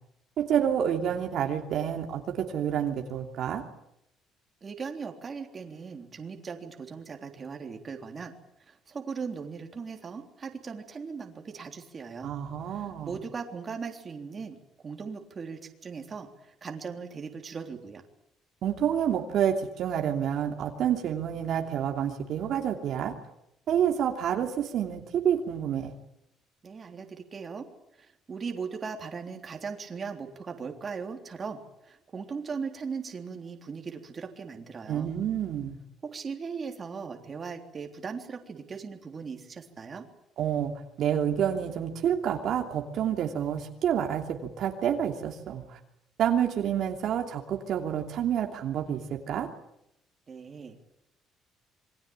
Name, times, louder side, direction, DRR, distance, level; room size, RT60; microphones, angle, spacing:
voice 1, 0.4-3.6 12.2-13.2 18.6-23.2 23.7-25.9 34.9-35.7 40.4-40.7 41.0-45.8 46.2-49.5, right 9 dB, 50° right, 3 dB, 2.9 m, -28 dB
voice 2, 4.6-8.3 8.7-12.3 12.7-14.6 14.8-18.0 26.6-27.7 28.0-35.1 36.0-40.1 50.3-50.9, right 5 dB, 25° right, 4 dB, 3.5 m, -38 dB
27.5 x 23.5 x 8.9 m, 0.83 s
cardioid pair, 165°, 0 cm